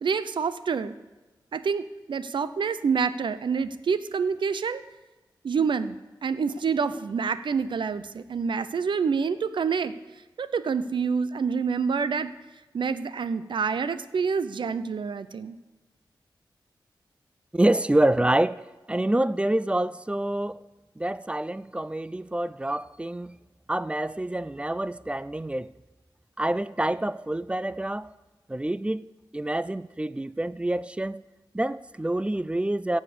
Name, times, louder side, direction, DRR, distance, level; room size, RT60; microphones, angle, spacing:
voice 1, 0.0-0.9 1.5-4.8 5.4-6.0 6.2-10.0 10.4-12.3 12.7-15.6, right 5 dB, 75° right, 0.6 m, -27 dB
voice 2, 17.5-20.6 21.0-23.4 23.7-25.7 26.4-28.1 28.5-29.1 29.3-31.2 31.5-33.0, right 1 dB, 15° right, 0.4 m, -27 dB
16.5 x 7.4 x 6.8 m
wide cardioid pair, 70°, 8 cm